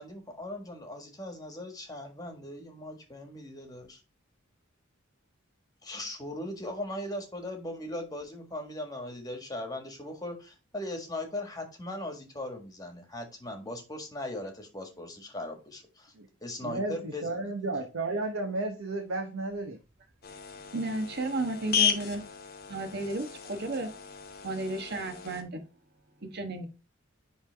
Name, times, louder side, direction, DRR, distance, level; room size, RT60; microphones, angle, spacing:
voice 1, 0.0-4.0 5.8-16.1 16.4-17.5, left 1 dB, 20° left, 1.6 m, -39 dB
voice 2, 16.6-19.8, right 2 dB, 75° right, 1.0 m, -33 dB
sound 1, 20.2-25.4, left 8 dB, 50° left, 1.0 m, -34 dB
voice 3, 20.7-22.2 22.7-23.9 24.4-25.6 26.2-26.7, right 2 dB, 50° right, 1.3 m, -33 dB
10.0 x 3.4 x 3.4 m
head